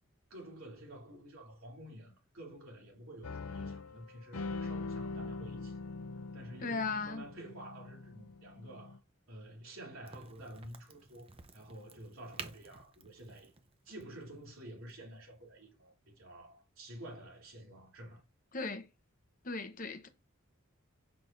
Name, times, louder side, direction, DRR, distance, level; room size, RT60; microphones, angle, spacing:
voice 1, 0.3-5.8 6.3-9.0 9.3-13.5 13.8-18.2, right 1 dB, 70° right, 3.2 m, -50 dB
sound 1, 3.2-9.0, left 3 dB, 85° left, 0.6 m, -43 dB
voice 2, 6.6-7.2 18.5-18.8 19.4-20.1, left 4 dB, 40° left, 0.9 m, -37 dB
Crack, 10.0-15.5, right 4 dB, 25° right, 0.7 m, -52 dB
7.0 x 6.0 x 2.7 m
head